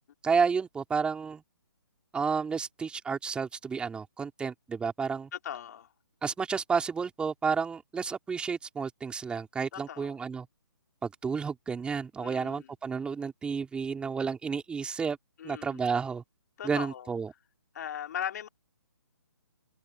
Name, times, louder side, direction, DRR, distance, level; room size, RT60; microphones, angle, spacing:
voice 1, 0.2-1.4 2.1-5.3 6.2-10.5 11.0-15.2 15.4-16.2 16.6-17.3, right 5 dB, 10° right, 3.8 m, -31 dB
voice 2, 5.3-5.9 9.7-10.2 12.2-12.7 15.4-15.8 16.6-17.1 17.7-18.5, left 9 dB, 45° left, 4.1 m, -38 dB
figure-of-eight pair, 140°, 12 cm